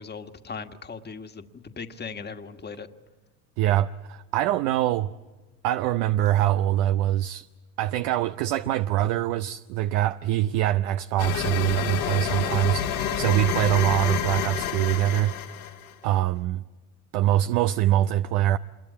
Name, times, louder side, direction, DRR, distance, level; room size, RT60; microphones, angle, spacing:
voice 1, 0.0-2.9, left 5 dB, 25° left, 1.6 m, -38 dB
voice 2, 3.6-5.1 5.6-7.5 7.8-15.3 16.0-16.6 17.1-18.6, right 13 dB, 70° right, 0.8 m, -24 dB
sound 1, 11.2-15.9, left 9 dB, 85° left, 2.7 m, -29 dB
26.5 x 22.0 x 8.5 m
hypercardioid pair, 80°, 42 cm